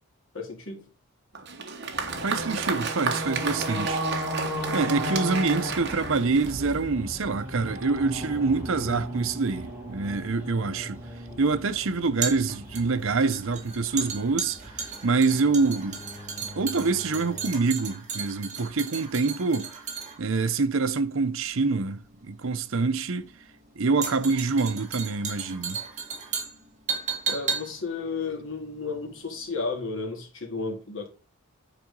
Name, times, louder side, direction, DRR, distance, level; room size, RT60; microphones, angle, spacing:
voice 1, 0.3-0.8 27.3-31.1, left 4 dB, 65° left, 2.5 m, -33 dB
Applause, 1.3-6.9, right 5 dB, 50° right, 1.4 m, -33 dB
sound 1, 1.9-17.5, equal, 10° right, 3.0 m, -36 dB
voice 2, 2.2-4.0 4.7-11.0 11.4-16.0 16.4-19.8 20.2-23.3 23.8-25.8, right 4 dB, 70° right, 0.7 m, -26 dB
sound 2, 10.1-29.3 29.6-29.7, right 6 dB, 35° right, 2.2 m, -35 dB
9.1 x 4.8 x 5.3 m
head